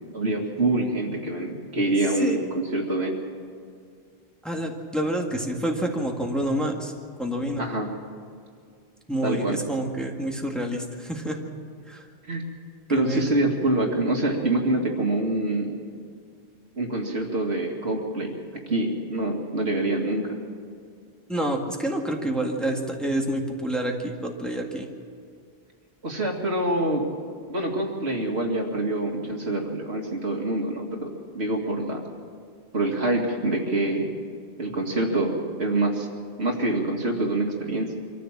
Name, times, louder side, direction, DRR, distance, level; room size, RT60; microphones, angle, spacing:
voice 1, 0.1-3.1 7.6-7.9 9.2-9.6 12.3-12.4 12.9-15.7 16.8-18.3 18.7-20.4 26.0-27.0 27.5-32.0 32.7-34.1 34.6-36.1 36.4-37.9, right 2 dB, 85° right, 1 dB, 2.6 m, -25 dB
voice 2, 4.4-6.9 7.2-7.6 9.1-11.4 11.9-12.0 12.9-13.3 21.3-24.9, right 1 dB, ahead, 1 dB, 1.9 m, -28 dB
24.5 x 14.5 x 7.4 m, 2.2 s
omnidirectional pair, 1.1 m